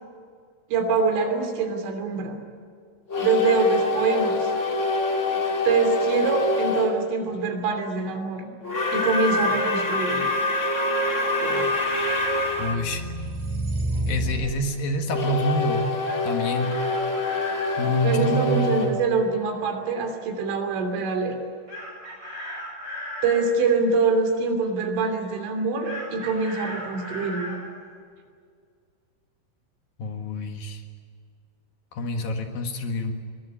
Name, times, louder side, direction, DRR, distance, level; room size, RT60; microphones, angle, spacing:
voice 1, 0.7-2.4 3.2-4.5 5.7-8.5 8.9-10.3 11.4-11.7 17.8-21.4 23.2-27.5, right 4 dB, 80° right, 5 dB, 5.6 m, -24 dB
sound 1, 3.1-7.0 8.6-12.8 15.1-20.0, left 2 dB, 30° left, 1.4 m, -26 dB
sound 2, 11.7-14.6, right 1 dB, 55° right, 4.5 m, -30 dB
voice 2, 12.6-13.0 14.1-15.9 16.2-16.7 17.8-19.0 30.0-30.8 31.9-33.1, left 1 dB, 60° left, 4 dB, 3.0 m, -27 dB
Chicken rooster, 16.0-17.8 21.7-23.4 25.8-27.6, left 1 dB, 20° right, 8.2 m, -36 dB
22.0 x 21.5 x 9.9 m, 2.2 s
omnidirectional pair, 5.5 m